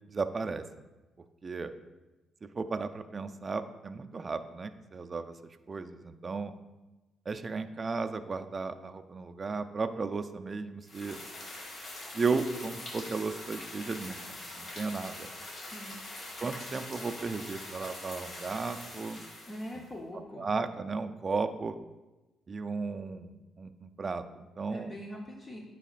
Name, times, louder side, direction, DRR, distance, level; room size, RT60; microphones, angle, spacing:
voice 1, 0.1-0.6 1.4-1.7 2.6-5.3 5.7-6.5 7.3-11.2 12.1-15.3 16.4-19.2 19.7-19.8 20.4-21.8 22.5-24.9, right 4 dB, 35° right, 9 dB, 0.4 m, -35 dB
sound 1, 10.9-19.9, left 1 dB, 50° left, 1.8 m, -43 dB
voice 2, 19.5-20.5 24.7-25.6, equal, 30° left, -1 dB, 0.9 m, -42 dB
9.8 x 4.1 x 2.5 m, 1.1 s
cardioid pair, 75°, 0 cm